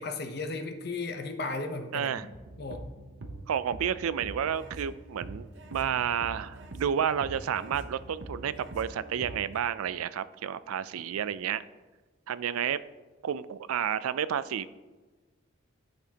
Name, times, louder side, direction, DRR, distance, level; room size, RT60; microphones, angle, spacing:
voice 1, 0.0-2.3 2.6-2.9, left 3 dB, 50° left, 6 dB, 0.8 m, -35 dB
voice 2, 1.9-2.3 3.5-11.6 12.3-12.8 13.2-14.7, right 8 dB, 90° right, 16 dB, 0.4 m, -31 dB
sound 1, 2.3-9.6, right 2 dB, 55° right, 0.7 m, -44 dB
11.0 x 6.1 x 2.9 m, 1.3 s
head